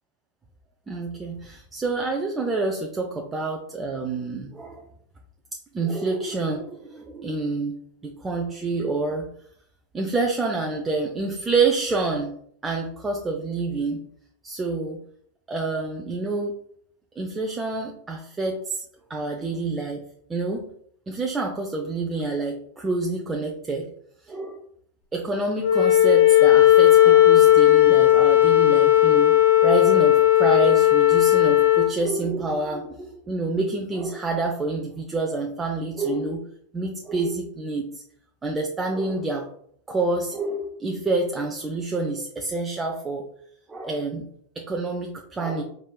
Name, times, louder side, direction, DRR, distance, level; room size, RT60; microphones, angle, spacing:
voice 1, 0.9-4.8 5.7-7.8 8.0-9.3 9.9-12.3 12.6-14.0 14.4-15.0 15.5-16.5 17.2-18.8 19.1-20.0 20.3-20.7 21.1-23.9 24.3-24.6 25.1-29.3 29.6-36.4 36.7-37.9 38.4-39.5 39.9-43.3 43.7-44.3 44.6-45.6, right 3 dB, 15° right, 1 dB, 0.5 m, -27 dB
Wind instrument woodwind instrument, 25.6-31.9, left 13 dB, 60° left, 0.6 m, -16 dB
5.0 x 3.5 x 2.3 m, 0.65 s
figure-of-eight pair, 90°, 0 cm